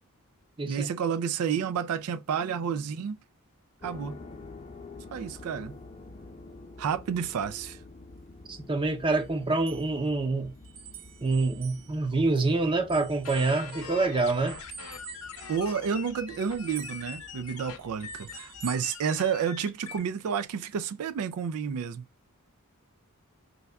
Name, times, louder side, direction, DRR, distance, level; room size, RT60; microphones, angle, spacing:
voice 1, 0.7-3.2 3.8-4.2 5.1-5.8 6.8-7.8 15.5-22.0, right 7 dB, 80° right, 0.4 m, -30 dB
sound 1, 3.8-18.7, left 3 dB, 30° left, 0.6 m, -49 dB
voice 2, 8.5-10.5 11.2-14.6, right 3 dB, 25° right, 0.6 m, -26 dB
sound 2, 9.1-12.6 12.9-19.8, right 8 dB, 60° right, 1.8 m, -48 dB
sound 3, 13.2-20.0, left 7 dB, 75° left, 0.7 m, -43 dB
5.3 x 2.3 x 3.4 m
head